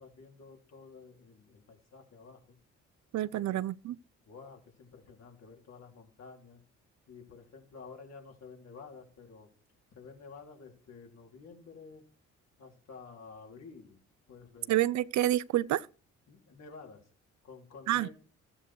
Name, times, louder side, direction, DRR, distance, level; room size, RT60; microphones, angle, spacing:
voice 1, 0.0-2.6 3.3-3.6 4.2-6.6 7.1-9.5 9.9-12.1 12.6-14.0 14.3-14.8 16.3-17.0 17.4-18.1, left 4 dB, 60° left, 4.1 m, -51 dB
voice 2, 3.1-4.0 14.7-15.9 17.9-18.1, right 14 dB, 70° right, 0.6 m, -28 dB
14.0 x 8.6 x 4.6 m
cardioid pair, 90°, 30 cm